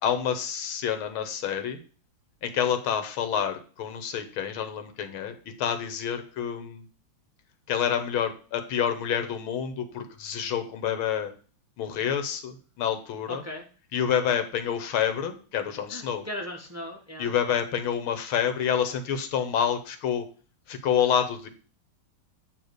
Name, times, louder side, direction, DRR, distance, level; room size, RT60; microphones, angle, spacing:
voice 1, 0.0-1.8 2.4-6.8 7.7-11.3 11.8-13.4 13.9-16.3 17.2-20.3 20.7-21.5, left 8 dB, 85° left, 9 dB, 1.9 m, -28 dB
voice 2, 13.3-13.6 15.9-17.3, left 1 dB, 10° right, 0 dB, 1.2 m, -37 dB
8.7 x 3.5 x 6.5 m, 0.39 s
omnidirectional pair, 2.2 m